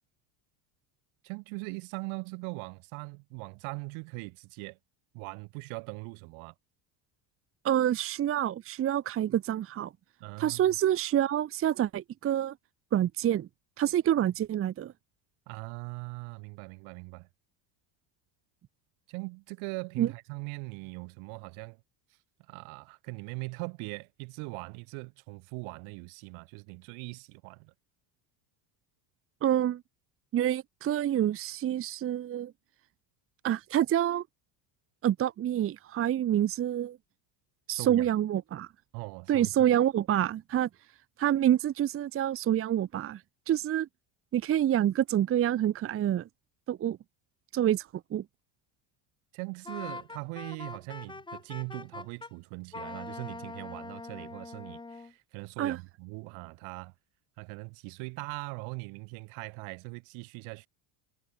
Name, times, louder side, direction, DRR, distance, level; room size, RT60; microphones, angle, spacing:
voice 1, 1.2-4.8 5.1-6.5 10.2-10.7 15.5-17.3 19.1-21.8 22.5-27.7 37.7-38.1 38.9-39.7 49.3-56.9 57.4-60.7, right 31 dB, 70° right, 6.3 m, -41 dB
voice 2, 7.6-9.9 10.4-12.5 12.9-13.5 13.8-14.9 20.0-20.1 29.4-29.8 30.3-32.5 33.4-34.2 35.0-37.0 37.7-38.7 39.3-40.7 41.2-43.2 43.5-43.9 44.3-46.3 46.7-47.0 47.5-48.2 55.6-55.8, right 11 dB, 25° right, 1.0 m, -27 dB
Wind instrument woodwind instrument, 49.7-52.3 52.7-55.1, left 3 dB, 10° left, 2.4 m, -42 dB
cardioid pair, 170°, 49 cm